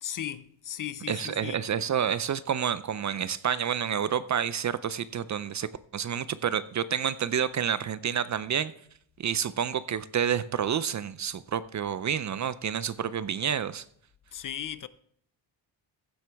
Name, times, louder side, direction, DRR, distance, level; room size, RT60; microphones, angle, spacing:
voice 1, 0.0-1.6 14.3-14.9, left 10 dB, 45° left, 0.4 m, -36 dB
voice 2, 1.1-5.7 5.9-8.7 9.2-13.8, right 8 dB, 40° right, 0.4 m, -29 dB
15.0 x 7.6 x 3.4 m
cardioid pair, 115°, 47 cm